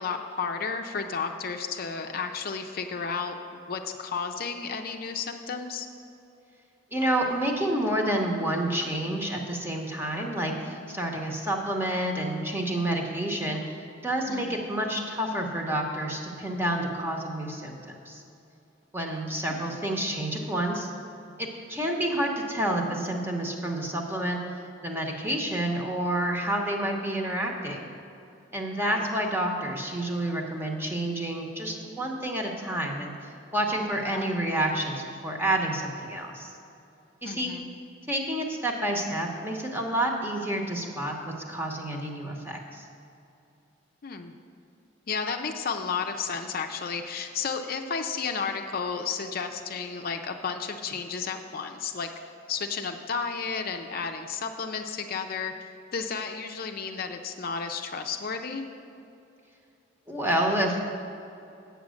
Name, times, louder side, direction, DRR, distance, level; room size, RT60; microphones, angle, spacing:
voice 1, 0.0-5.9 14.3-14.6 19.5-19.6 28.7-29.0 34.1-34.3 37.2-37.7 44.0-44.3 45.1-52.1 52.5-55.5 55.9-58.7, left 5 dB, 50° left, 5 dB, 0.5 m, -32 dB
voice 2, 6.9-13.8 14.0-18.2 18.9-20.9 21.4-24.4 24.8-27.9 28.5-33.1 33.5-36.5 37.2-37.5 38.1-42.8 60.1-60.8, right 1 dB, 10° right, 1 dB, 0.9 m, -29 dB
8.1 x 7.2 x 6.3 m, 2.7 s
head